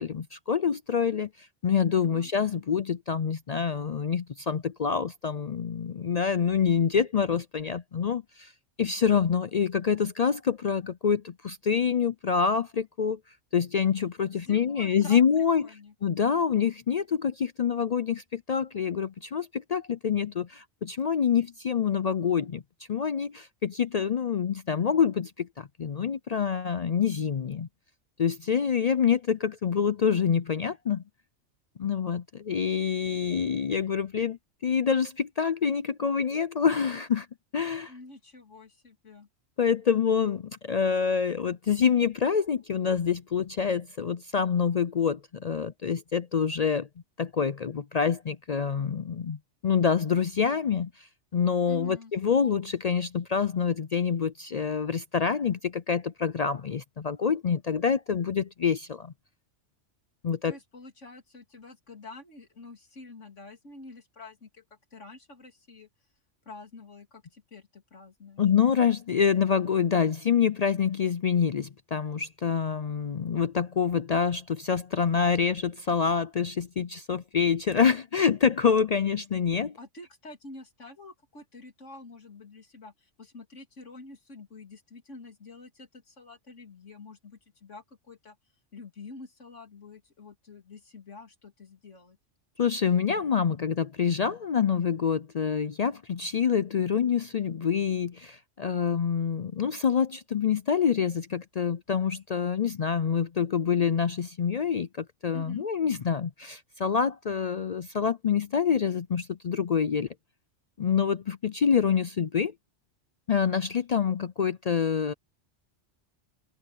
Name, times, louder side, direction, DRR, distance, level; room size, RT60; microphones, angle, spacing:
voice 1, 0.0-8.5 8.8-13.2 13.5-15.7 16.0-22.6 22.9-27.7 28.2-31.0 31.8-37.3 37.5-37.9 39.6-46.9 47.2-59.1 60.2-60.5 68.4-79.7 92.6-110.1 110.8-112.5 113.3-115.1, left 7 dB, 55° left, 0.4 m, -26 dB
voice 2, 14.3-15.9 37.9-39.3 51.7-52.1 60.4-65.9 66.4-68.4 79.8-88.4 88.7-92.2 105.3-105.7, left 3 dB, 80° left, 3.2 m, -47 dB
omnidirectional pair, 1.2 m